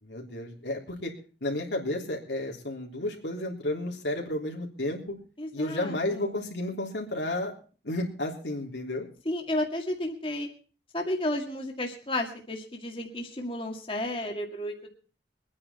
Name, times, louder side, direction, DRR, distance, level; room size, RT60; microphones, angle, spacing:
voice 1, 0.0-1.1 1.4-5.0 5.5-7.5 7.8-9.1, left 1 dB, 80° left, 0 dB, 3.4 m, -32 dB
voice 2, 5.4-6.4 9.2-10.5 10.9-14.9, left 1 dB, 30° left, 2 dB, 2.1 m, -32 dB
24.0 x 9.8 x 4.3 m, 0.39 s
head